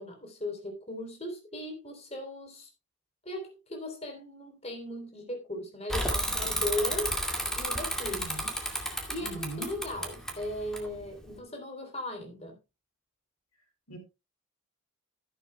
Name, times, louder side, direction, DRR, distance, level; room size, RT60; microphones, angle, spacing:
voice 1, 0.0-2.7 3.2-7.2 7.6-8.2 9.1-12.6, left 1 dB, 30° left, 3.2 m, -37 dB
Bicycle / Mechanisms, 5.9-11.4, equal, ahead, 2.0 m, -32 dB
voice 2, 8.1-8.5 9.2-9.7 13.9-14.0, right 2 dB, 75° left, 3.1 m, -40 dB
13.5 x 11.5 x 2.2 m
head